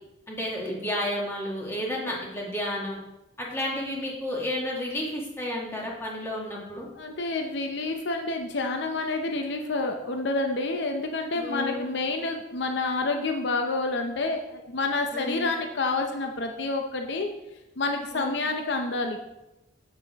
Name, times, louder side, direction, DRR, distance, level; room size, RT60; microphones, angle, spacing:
voice 1, 0.3-3.0 3.4-6.9 11.3-11.9 15.1-15.5 18.1-18.4, left 1 dB, 10° left, -3 dB, 1.6 m, -31 dB
voice 2, 6.9-17.3 17.8-19.2, left 3 dB, 60° left, 4 dB, 0.7 m, -28 dB
7.6 x 6.6 x 3.5 m, 0.94 s
head